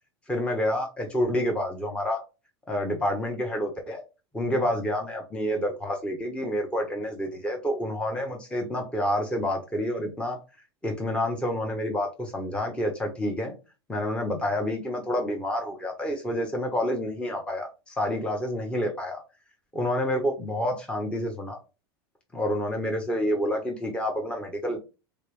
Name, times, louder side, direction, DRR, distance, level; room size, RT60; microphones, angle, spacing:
voice 1, 0.3-2.2 2.7-4.0 4.3-10.4 10.8-13.5 13.9-19.2 19.7-21.6 22.3-24.8, left 1 dB, 10° left, 0.8 m, -28 dB
4.4 x 2.1 x 3.0 m
hypercardioid pair, 95°, 13 cm